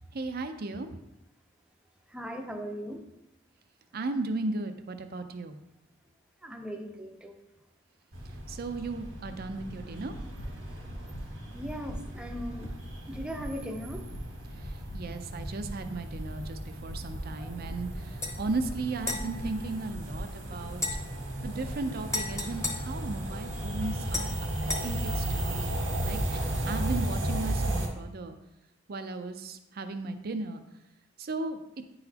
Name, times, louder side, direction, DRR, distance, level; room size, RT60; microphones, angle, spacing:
voice 1, 0.1-0.9 3.9-5.6 8.5-10.2 14.9-20.8 21.4-24.3 24.6-26.4 26.7-28.4 28.9-30.6 31.2-31.6, right 3 dB, 50° right, 8 dB, 0.5 m, -36 dB
voice 2, 2.1-3.0 6.4-7.4 11.5-12.7 13.1-14.0 17.4-17.5, equal, 5° right, 3 dB, 0.6 m, -38 dB
sound 1, 8.1-27.9, right 1 dB, 85° right, 1.7 m, -35 dB
sound 2, 10.1-10.5 10.9-11.2 11.6-12.0 12.4-12.7 13.1-13.5 13.9-14.2 14.6-15.0 15.4-15.7 16.1-16.5 16.9-17.2 17.6-18.0 18.4-18.7 19.1-19.5 19.9-20.2 20.6-21.0 21.4-21.7 22.1-22.2, left 1 dB, 80° left, 0.8 m, -44 dB
sound 3, 18.2-18.4 19.0-20.3 20.7-23.6 24.1-24.8, left 2 dB, 15° left, 0.9 m, -37 dB
9.7 x 4.0 x 2.9 m, 0.92 s
head